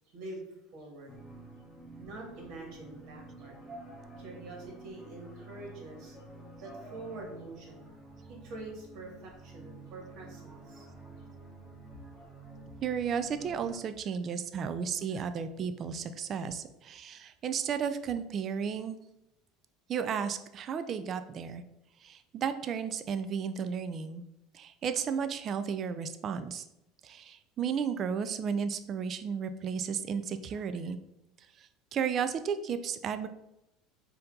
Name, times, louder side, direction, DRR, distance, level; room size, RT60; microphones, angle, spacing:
voice 1, 0.1-0.4 0.7-1.2 2.0-3.5 4.2-6.2 6.6-7.9 8.3-10.9, right 2 dB, 60° right, 0 dB, 1.5 m, -45 dB
sound 1, 1.1-13.8, right 2 dB, 5° left, 1.1 m, -49 dB
voice 2, 12.8-19.0 19.9-21.6 22.0-24.2 24.5-26.6 27.0-31.0 31.6-33.3, right 7 dB, 40° right, 10 dB, 0.3 m, -33 dB
4.2 x 2.7 x 3.8 m, 0.86 s
supercardioid pair, 100°, 0 cm